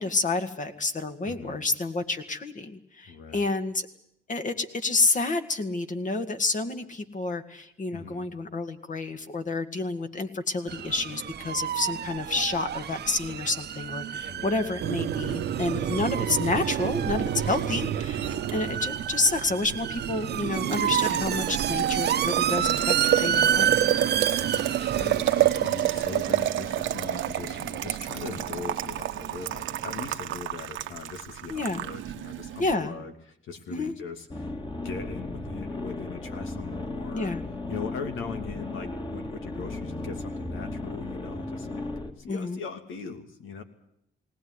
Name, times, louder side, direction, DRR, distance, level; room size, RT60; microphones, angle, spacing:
voice 1, 0.0-3.9 4.3-23.9 31.5-31.8 32.6-32.9 33.7-33.9 37.1-37.4 42.3-42.6, left 3 dB, 40° left, 7 dB, 2.2 m, -29 dB
voice 2, 1.2-1.6 3.1-3.6 7.9-8.3 14.3-14.8 15.8-16.2 17.4-17.7 18.2-18.5 24.2-34.5 34.8-37.3 37.7-41.9 42.2-43.6, left 5 dB, 80° left, 6 dB, 2.8 m, -40 dB
sound 1, 10.7-30.2, right 9 dB, 55° right, 1.1 m, -31 dB
Boiling, 14.8-32.7, right 11 dB, 80° right, 1.3 m, -29 dB
sound 2, 34.3-42.1, left 2 dB, 25° left, 2.6 m, -35 dB
20.0 x 18.5 x 9.8 m, 0.72 s
cardioid pair, 90°, 20 cm